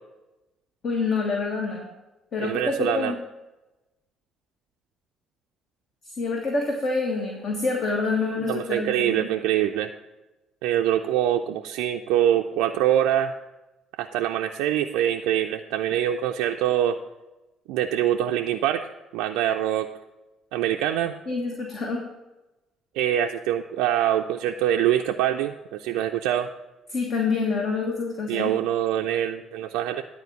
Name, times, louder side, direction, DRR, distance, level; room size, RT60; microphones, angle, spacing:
voice 1, 0.8-1.9 2.3-3.2 6.2-9.3 21.3-22.1 26.9-28.5, left 3 dB, 55° left, 0 dB, 1.4 m, -27 dB
voice 2, 2.4-3.1 8.5-9.9 10.6-13.3 14.0-17.0 17.7-19.9 20.5-21.1 22.9-26.5 28.3-30.0, right 11 dB, 75° right, 3 dB, 0.3 m, -24 dB
10.5 x 4.4 x 7.1 m, 1.0 s
hypercardioid pair, 50°, 0 cm